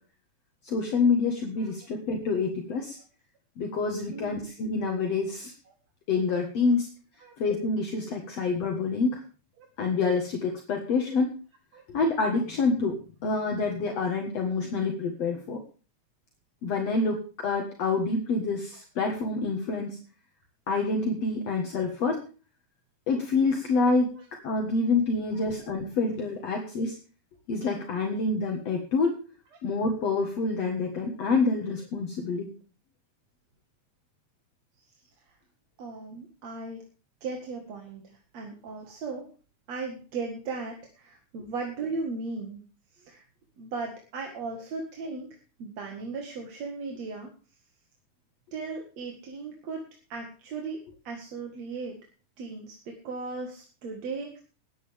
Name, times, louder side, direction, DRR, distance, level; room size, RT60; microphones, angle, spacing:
voice 1, 0.6-3.0 3.6-5.5 6.1-6.9 7.4-9.2 9.8-11.3 11.9-13.0 13.2-15.6 16.6-17.2 17.4-20.0 20.7-22.2 23.1-24.1 24.4-27.0 27.5-29.1 29.6-32.5, left 4 dB, 60° left, 2 dB, 2.7 m, -27 dB
voice 2, 4.1-4.4 5.7-5.8 7.2-7.3 9.6-9.7 11.7-11.8 23.8-24.3 25.3-25.6 34.8-34.9 35.8-36.8 37.2-38.0 38.3-39.3 39.7-42.6 42.9-43.2 43.6-45.3 45.6-47.3 48.5-49.8 50.1-52.0 52.4-54.4, right 4 dB, 60° right, 2 dB, 2.9 m, -37 dB
20.5 x 9.5 x 3.6 m, 0.37 s
omnidirectional pair, 3.5 m